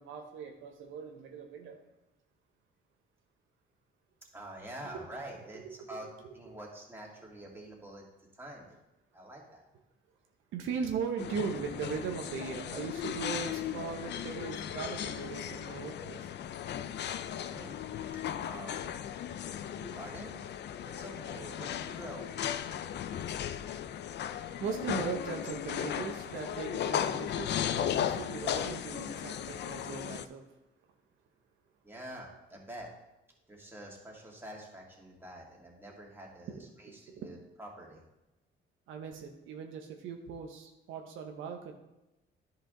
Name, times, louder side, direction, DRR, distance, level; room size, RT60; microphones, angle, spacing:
voice 1, 0.0-1.8 4.9-5.0 5.6-5.8 6.2-6.3 10.5-16.3 24.3-30.4 36.5-37.3 38.9-41.7, right 6 dB, 85° right, 3 dB, 1.0 m, -39 dB
voice 2, 4.3-6.1 6.3-8.8 9.1-9.6 17.5-17.8 18.1-19.3 19.7-20.4 20.8-22.2 31.8-32.9 33.5-38.0, right 1 dB, 10° right, -2 dB, 2.3 m, -47 dB
sound 1, 11.2-30.3, left 10 dB, 60° left, 0.5 m, -36 dB
10.5 x 5.0 x 3.8 m, 0.96 s
cardioid pair, 90°, 20 cm